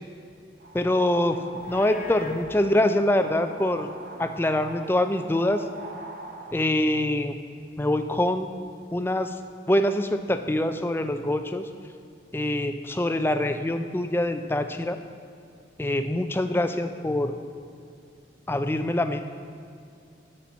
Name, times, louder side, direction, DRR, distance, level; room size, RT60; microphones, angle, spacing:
sound 1, 0.6-6.5, right 2 dB, 50° right, 0.8 m, -42 dB
voice 1, 0.7-1.4 1.7-3.9 4.2-5.6 6.5-7.4 7.8-8.5 8.9-9.3 9.7-11.6 12.3-15.0 15.8-17.3 18.5-19.2, left 1 dB, 10° left, 8 dB, 0.4 m, -24 dB
Livestock farm animals working animals, 1.5-2.4, left 3 dB, 45° left, 0.8 m, -42 dB
11.5 x 4.3 x 7.0 m, 2.3 s
head